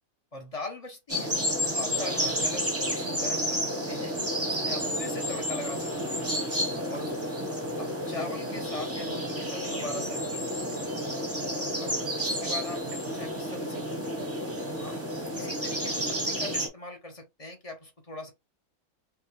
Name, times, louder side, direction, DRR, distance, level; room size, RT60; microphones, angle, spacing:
voice 1, 0.3-1.3 1.7-4.1 4.5-6.3 6.9-7.3 7.8-10.9 11.8-13.8 14.7-15.0 15.4-18.3, left 2 dB, 30° left, 0.9 m, -41 dB
sound 1, 1.1-16.7, equal, 10° right, 0.9 m, -31 dB
4.7 x 2.3 x 3.2 m
omnidirectional pair, 1.5 m